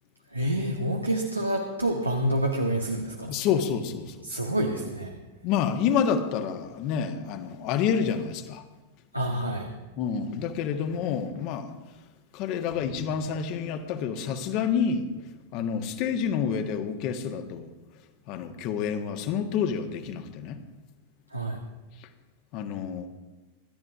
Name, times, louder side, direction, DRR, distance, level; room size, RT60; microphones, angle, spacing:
voice 1, 0.3-3.3 4.2-5.1 9.1-9.7 21.3-21.6, right 1 dB, 85° right, 1 dB, 1.4 m, -28 dB
voice 2, 3.3-4.5 5.4-8.6 10.0-11.7 12.3-15.1 15.5-17.7 18.3-20.6 22.0-22.1 22.5-23.1, left 7 dB, 40° left, 6 dB, 1.5 m, -28 dB
24.5 x 12.5 x 2.7 m, 1.2 s
figure-of-eight pair, 90°, 0 cm